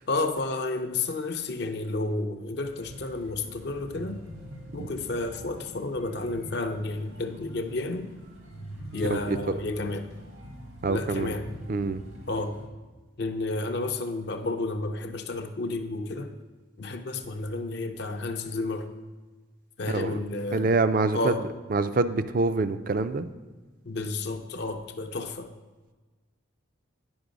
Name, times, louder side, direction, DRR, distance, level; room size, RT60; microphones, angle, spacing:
voice 1, 0.1-4.2 4.7-8.1 8.9-10.1 10.9-11.5 12.3-12.6 13.2-16.3 16.8-18.9 19.8-20.7 21.1-21.4 23.8-25.5, left 2 dB, 50° left, 6 dB, 0.5 m, -31 dB
sound 1, 2.6-12.7, equal, 90° right, 1.8 m, -44 dB
voice 2, 9.1-9.5 10.8-11.3 11.7-12.0 19.9-20.2 20.5-21.3 21.7-23.3, right 3 dB, 40° right, 12 dB, 0.4 m, -26 dB
9.5 x 5.3 x 5.1 m, 1.3 s
head